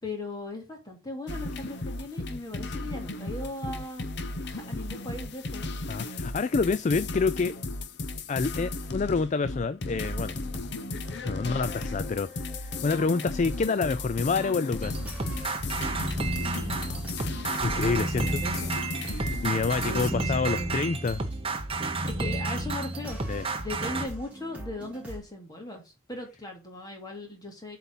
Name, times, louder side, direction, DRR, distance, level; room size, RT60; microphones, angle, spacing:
voice 1, 0.0-4.1 4.4-5.7 11.4-11.7 16.7-17.1 17.5-18.8 19.5-20.7 22.0-23.2 23.6-27.8, left 1 dB, 20° left, 2.5 m, -38 dB
sound 1, 1.3-20.1, left 2 dB, 55° left, 0.8 m, -35 dB
voice 2, 5.9-7.5 8.3-10.4 11.2-15.0 17.5-18.4 19.1-21.2 23.3-23.5, left 4 dB, 35° left, 0.3 m, -28 dB
sound 2, 9.8-25.2, right 1 dB, 5° right, 3.1 m, -43 dB
sound 3, 14.8-24.1, right 3 dB, 25° right, 0.9 m, -31 dB
8.2 x 4.1 x 5.5 m
head